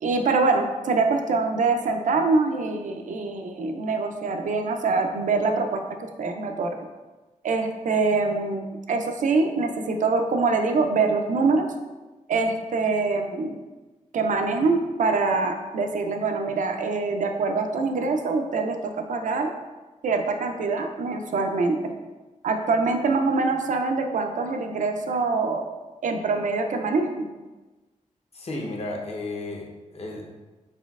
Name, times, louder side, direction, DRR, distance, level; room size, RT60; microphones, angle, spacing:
voice 1, 0.0-6.7 7.4-11.7 12.3-13.6 14.1-19.5 20.0-21.9 22.4-25.6 26.0-27.3, right 3 dB, 75° right, 5 dB, 0.4 m, -24 dB
voice 2, 28.3-29.6 29.9-30.2, left 2 dB, 50° left, 0 dB, 0.7 m, -33 dB
4.2 x 3.9 x 2.4 m, 1.2 s
wide cardioid pair, 105°, 13 cm